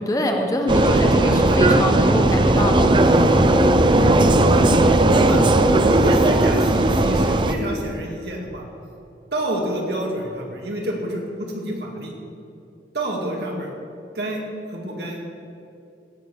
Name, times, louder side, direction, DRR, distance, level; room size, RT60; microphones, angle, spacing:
voice 1, 0.0-2.9 3.4-3.7, left 1 dB, 20° left, 3 dB, 1.0 m, -24 dB
Vehicle, 0.7-7.6, right 2 dB, 25° right, 0.5 m, -16 dB
voice 2, 0.7-1.8 3.9-4.8 5.1-5.4 5.9-8.7 9.3-12.1 12.9-13.7 14.1-14.4 14.7-15.2, right 1 dB, 65° right, 0 dB, 2.3 m, -27 dB
16.5 x 6.7 x 6.8 m, 2.7 s
head